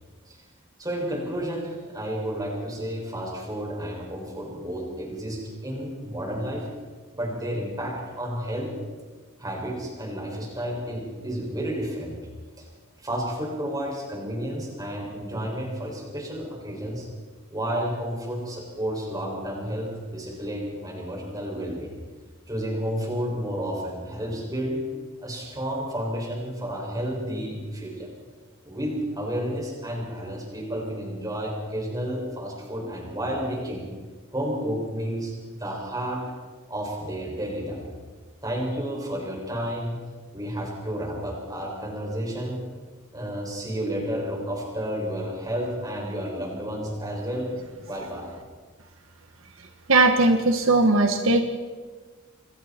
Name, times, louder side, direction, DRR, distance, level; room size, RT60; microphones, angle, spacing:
voice 1, 0.8-6.7 7.1-8.7 9.4-12.2 12.6-12.7 13.0-17.1 17.5-21.9 22.5-24.8 25.2-28.1 28.6-33.9 34.3-36.2 36.7-37.9 38.4-40.0 40.3-42.6 43.1-47.5 47.8-48.4, equal, 20° right, -1 dB, 6.5 m, -31 dB
voice 2, 49.6-51.4, right 2 dB, 75° right, 5 dB, 1.5 m, -20 dB
28.5 x 23.0 x 4.5 m, 1.4 s
head